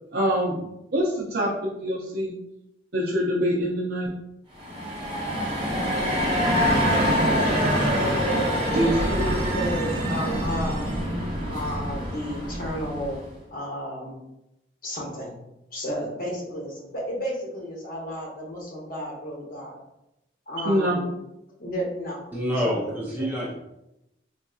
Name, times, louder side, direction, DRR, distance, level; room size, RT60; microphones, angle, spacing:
voice 1, 0.1-0.7 0.9-2.3 2.9-4.1 8.7-9.2 20.6-21.0, equal, 60° right, -6 dB, 0.6 m, -24 dB
sound 1, 4.5-13.3, equal, 25° right, 0.9 m, -25 dB
voice 2, 8.8-10.9 11.5-13.2 13.5-14.2 14.8-15.3 15.7-19.8 20.5-21.2 21.6-22.2 22.6-23.3, equal, 50° left, -3 dB, 0.9 m, -32 dB
voice 3, 22.3-23.5, equal, 10° right, -5 dB, 0.5 m, -27 dB
3.8 x 2.6 x 2.3 m, 0.87 s
head